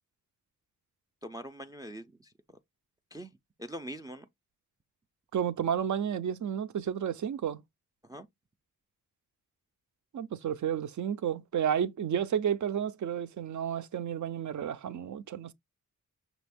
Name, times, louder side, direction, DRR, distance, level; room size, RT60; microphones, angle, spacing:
voice 1, 1.2-2.3 3.1-3.3 3.6-4.3 8.0-8.3, right 1 dB, 10° right, 0.3 m, -42 dB
voice 2, 5.3-7.6 10.1-15.5, right 8 dB, 65° right, 0.5 m, -31 dB
6.1 x 2.4 x 3.4 m
wide cardioid pair, 125°, 32 cm